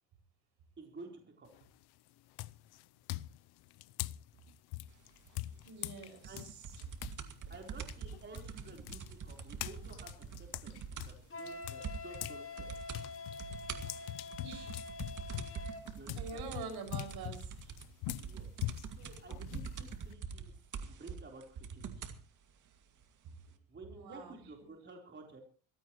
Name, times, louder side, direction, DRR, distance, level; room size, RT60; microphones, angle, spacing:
voice 1, 0.8-1.5 6.3-6.5 7.5-10.1 10.4-12.7 16.0-16.4 18.2-18.5 19.0-20.5 20.9-22.1 23.7-25.4, right 3 dB, 30° right, 1 dB, 4.0 m, -52 dB
sound 1, 1.5-1.8 2.4-7.2 7.5-12.4 12.7-20.1, left 17 dB, 75° left, 0.7 m, -43 dB
voice 2, 5.6-6.8 14.4-14.8 16.1-17.7 23.9-24.7, right 4 dB, 70° right, 6 dB, 6.2 m, -46 dB
sound 2, 6.2-11.3 11.5-11.6 11.8-12.3 12.6-13.0 13.4-22.2 23.0-23.1, right 6 dB, 50° right, 2.3 m, -44 dB
Wind instrument woodwind instrument, 11.3-15.8, left 3 dB, 35° left, 2.6 m, -46 dB
23.0 x 16.0 x 3.1 m, 0.39 s
cardioid pair, 105°, 39 cm